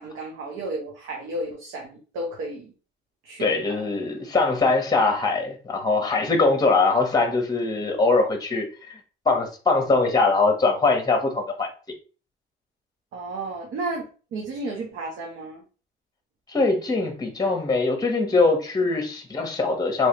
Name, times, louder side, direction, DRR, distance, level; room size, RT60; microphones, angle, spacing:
voice 1, 0.0-2.7 3.2-3.5 3.8-3.9 13.1-15.6, right 2 dB, 85° right, 0 dB, 0.8 m, -33 dB
voice 2, 3.4-9.0 9.3-11.7 16.5-20.1, left 3 dB, 20° left, 5 dB, 0.9 m, -22 dB
3.1 x 3.1 x 2.9 m, 0.37 s
cardioid pair, 90°, 20 cm